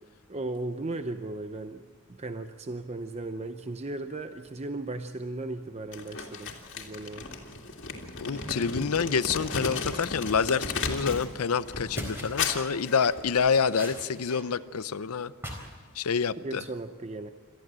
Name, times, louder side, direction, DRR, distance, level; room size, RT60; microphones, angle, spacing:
voice 1, 0.3-1.8 2.1-7.3 16.4-17.3, right 2 dB, 30° right, 8 dB, 0.7 m, -36 dB
Crumpling crinkling, 5.9-11.3 11.6-13.6, left 4 dB, 55° left, 2.5 m, -35 dB
voice 2, 8.2-15.3 15.9-16.6, left 6 dB, 75° left, 15 dB, 0.6 m, -27 dB
sound 1, 11.3-11.4 11.7-12.5 13.1-14.4 14.7-15.8 16.1-16.4, equal, 10° right, 4.0 m, -41 dB
28.0 x 14.0 x 7.6 m, 1.5 s
head